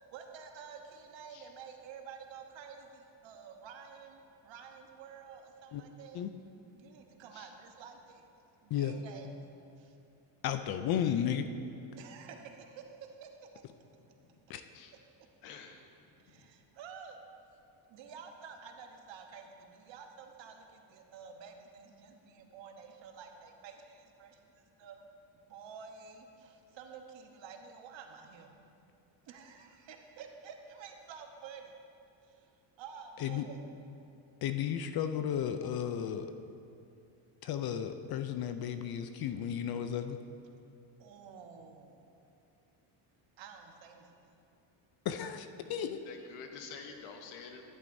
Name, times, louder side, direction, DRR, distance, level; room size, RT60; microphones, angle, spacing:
voice 1, 0.0-6.5 6.7-8.2 8.6-9.4 9.8-10.0 11.9-13.5 16.2-17.2 17.9-25.1 25.5-28.6 29.3-31.7 32.2-32.5 32.8-33.6 41.0-42.1 43.4-44.3, right 6 dB, 65° right, 4 dB, 1.1 m, -50 dB
voice 2, 10.4-11.4 14.5-14.6 33.2-33.4 34.4-36.3 37.4-40.2 45.1-46.0, left 9 dB, 50° left, 9 dB, 0.5 m, -33 dB
voice 3, 15.4-15.8 16.3-16.5 46.1-47.6, left 5 dB, 80° left, 4 dB, 1.2 m, -48 dB
11.5 x 11.0 x 2.6 m, 2.7 s
cardioid pair, 135°, 50 cm